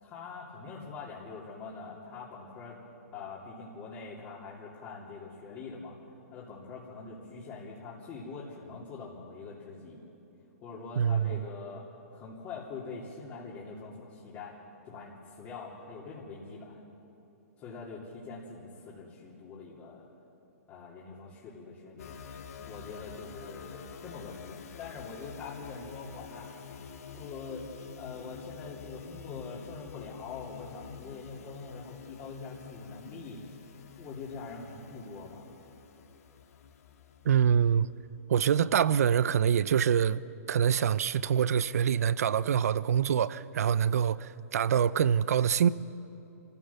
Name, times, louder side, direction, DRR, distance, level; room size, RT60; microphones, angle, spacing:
voice 1, 0.0-2.8 3.1-6.0 6.3-10.0 10.6-11.8 12.1-14.6 14.8-16.8 17.6-20.0 20.7-22.2 22.6-26.7 27.1-27.7 27.9-33.6 34.0-35.5, left 4 dB, 30° left, 3.0 m, -44 dB
voice 2, 11.0-11.4 37.2-37.9 38.3-40.2 40.5-45.7, right 8 dB, 70° right, 0.6 m, -25 dB
sound 1, 22.0-38.3, left 6 dB, 70° left, 1.8 m, -48 dB
25.5 x 15.0 x 7.1 m
hypercardioid pair, 145°, 8 cm